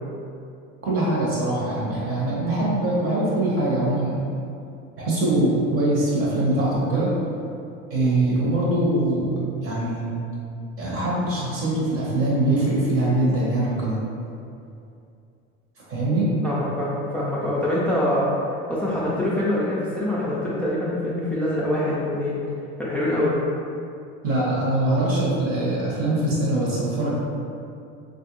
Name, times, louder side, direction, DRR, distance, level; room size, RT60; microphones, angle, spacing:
voice 1, 0.8-4.2 5.0-7.1 7.9-10.2 10.8-14.0 15.9-16.3 24.2-27.2, right 1 dB, 45° right, -6 dB, 1.1 m, -23 dB
voice 2, 16.4-18.4 18.7-22.4 22.8-23.3, left 1 dB, 5° left, -8 dB, 0.4 m, -24 dB
3.1 x 2.5 x 3.0 m, 2.5 s
cardioid pair, 120°, 30 cm